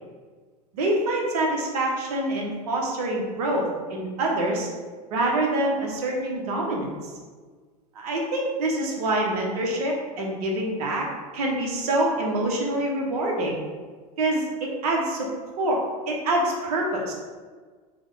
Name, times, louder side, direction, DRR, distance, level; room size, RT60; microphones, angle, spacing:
voice 1, 0.7-4.7 5.1-7.1 7.9-11.1 11.3-13.6 14.2-15.3 15.6-15.8 16.1-17.1, right 1 dB, 75° right, -1 dB, 0.9 m, -26 dB
3.3 x 2.2 x 3.8 m, 1.5 s
hypercardioid pair, 100°, 20 cm